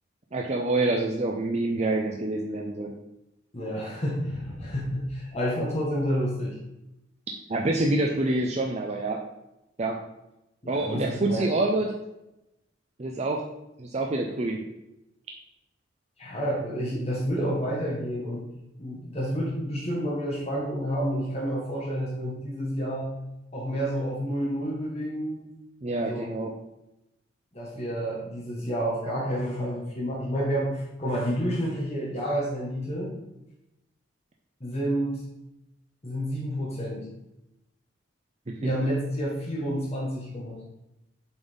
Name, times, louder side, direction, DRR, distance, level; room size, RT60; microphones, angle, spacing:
voice 1, 0.3-2.9 7.5-9.2 9.8-10.0 10.7-11.9 13.0-13.4 13.8-14.6 25.8-26.5 38.5-38.8, right 2 dB, 35° right, 1 dB, 0.5 m, -27 dB
voice 2, 3.5-6.6 10.6-11.5 16.2-18.5 18.8-23.2 23.5-25.4 25.9-26.3 27.5-33.1 34.6-35.2 36.0-37.1 38.6-40.6, equal, 35° left, -5 dB, 1.5 m, -29 dB
7.0 x 4.1 x 5.2 m, 0.91 s
head